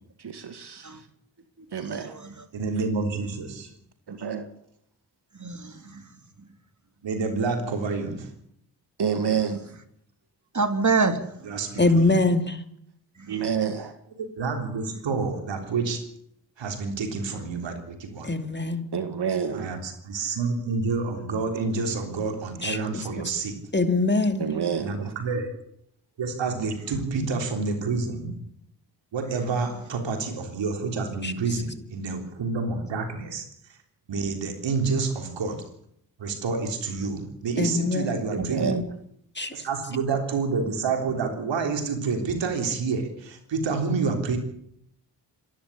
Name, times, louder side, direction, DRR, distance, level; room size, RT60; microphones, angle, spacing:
voice 1, 0.2-1.1 1.7-2.2 4.1-4.5 9.0-9.7 13.3-13.9 18.9-19.7 24.4-24.9 38.3-38.8, right 7 dB, 60° right, 8 dB, 2.0 m, -28 dB
voice 2, 2.5-3.7 7.0-8.3 11.4-12.2 14.2-16.1 16.6-18.3 19.5-23.6 24.8-25.6 26.2-28.3 29.1-33.5 34.1-35.6 36.2-38.8 39.5-44.4, right 4 dB, 80° right, 5 dB, 3.7 m, -28 dB
voice 3, 5.4-6.1 10.5-11.3 11.7-11.8 13.2-13.3 38.4-38.8, right 4 dB, 40° right, 8 dB, 3.3 m, -26 dB
voice 4, 11.8-12.6 18.2-18.9 22.6-22.8 23.2-23.3 23.7-24.5 31.2-31.3 37.6-38.2 39.4-39.5, left 2 dB, 25° left, 8 dB, 2.7 m, -23 dB
26.0 x 11.5 x 8.6 m, 0.71 s
supercardioid pair, 40°, 44 cm